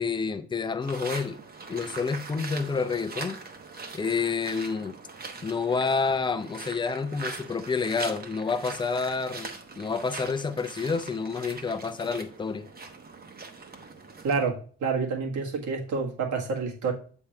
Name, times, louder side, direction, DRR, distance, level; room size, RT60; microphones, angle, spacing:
voice 1, 0.0-1.4 1.7-3.4 3.9-5.0 5.4-12.7, left 5 dB, 15° left, 0.5 m, -29 dB
sound 1, 0.8-14.5, right 3 dB, 30° right, 1.0 m, -41 dB
voice 2, 14.2-16.9, right 4 dB, 80° right, 1.8 m, -28 dB
7.3 x 3.6 x 4.4 m
cardioid pair, 90°, 30 cm